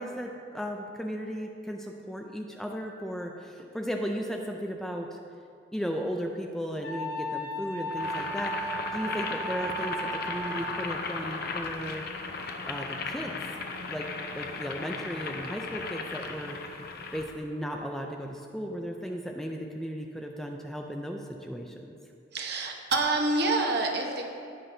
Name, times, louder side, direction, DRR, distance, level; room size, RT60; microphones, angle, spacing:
voice 1, 0.0-5.2 5.7-12.0 12.6-13.4 13.9-14.1 14.3-16.6 17.1-21.9, equal, ahead, 2 dB, 0.4 m, -35 dB
Wind instrument woodwind instrument, 6.8-10.9, right 1 dB, 75° left, 2.2 m, -35 dB
Boiling, 7.9-17.3, left 4 dB, 50° left, 0.7 m, -36 dB
voice 2, 22.3-24.2, right 2 dB, 55° right, 2 dB, 1.0 m, -27 dB
18.0 x 6.0 x 2.7 m, 2.4 s
head